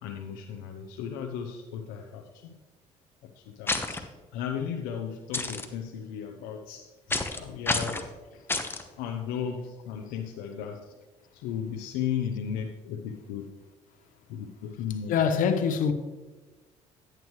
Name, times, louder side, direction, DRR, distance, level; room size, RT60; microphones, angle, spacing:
voice 1, 0.0-2.6 3.2-6.9 7.3-8.4 9.0-11.0 11.3-13.6 14.3-15.2, left 8 dB, 85° left, 0.7 m, -35 dB
sound 1, 3.7-4.0 5.3-5.6 7.1-7.4 7.6-8.0 8.5-8.8, left 2 dB, 15° left, 1.1 m, -29 dB
voice 2, 15.1-15.9, left 6 dB, 70° left, 1.0 m, -24 dB
10.5 x 9.0 x 3.1 m
supercardioid pair, 75°, 14 cm